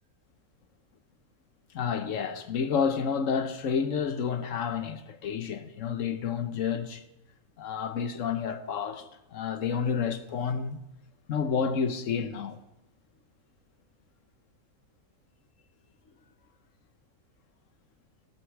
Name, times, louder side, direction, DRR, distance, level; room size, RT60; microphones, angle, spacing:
voice 1, 1.7-7.0 7.6-10.8 11.3-12.6, left 6 dB, 65° left, 1.3 m, -30 dB
14.5 x 13.0 x 4.8 m
omnidirectional pair, 1.4 m